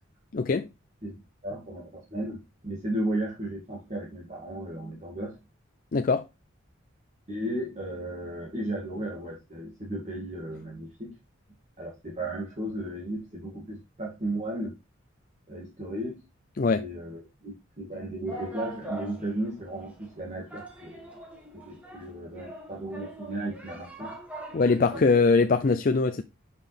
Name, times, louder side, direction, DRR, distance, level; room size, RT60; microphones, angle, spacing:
voice 1, 0.3-0.7 5.9-6.2 16.6-16.8 24.5-26.2, left 4 dB, 40° left, 0.4 m, -22 dB
voice 2, 1.4-5.4 7.3-11.1 11.8-14.7 15.5-16.2 16.7-21.1 21.5-24.1 24.9-25.1, right 1 dB, 35° right, 2.4 m, -35 dB
sound 1, 18.3-25.0, right 2 dB, 5° right, 1.6 m, -43 dB
7.2 x 5.7 x 3.4 m
head